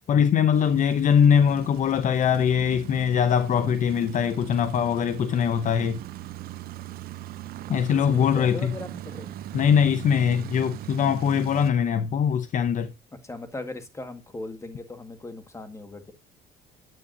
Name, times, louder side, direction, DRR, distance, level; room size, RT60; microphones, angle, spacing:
voice 1, 0.0-6.0 7.7-8.7 9.5-12.9, left 8 dB, 50° left, 0.6 m, -22 dB
sound 1, 0.5-11.7, right 13 dB, 65° right, 0.5 m, -40 dB
voice 2, 7.9-9.4 13.2-16.1, left 2 dB, 15° left, 1.7 m, -38 dB
9.3 x 8.4 x 2.6 m
cardioid pair, 110°, 17 cm